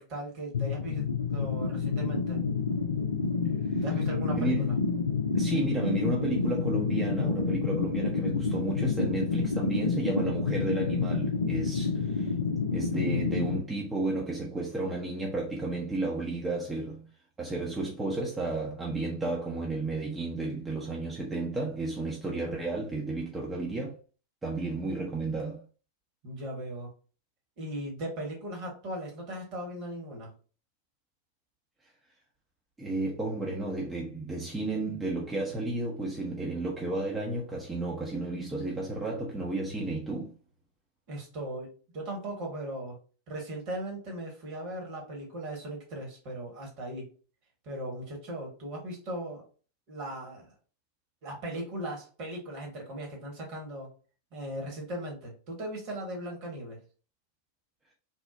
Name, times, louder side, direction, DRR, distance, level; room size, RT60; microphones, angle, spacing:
voice 1, 0.0-2.4 3.8-4.7 26.2-26.9 27.6-30.3 41.1-43.0 43.3-47.1 47.6-49.4 49.9-50.5 51.2-53.9 54.3-56.8, right 1 dB, 45° right, 1.1 m, -38 dB
sound 1, 0.5-13.5, left 4 dB, 75° left, 0.4 m, -29 dB
voice 2, 4.3-4.8 5.3-12.3 12.7-17.0 17.4-23.9 24.4-25.6 32.8-40.3, right 2 dB, 15° right, 0.5 m, -32 dB
2.9 x 2.0 x 2.5 m
figure-of-eight pair, 90°, 0 cm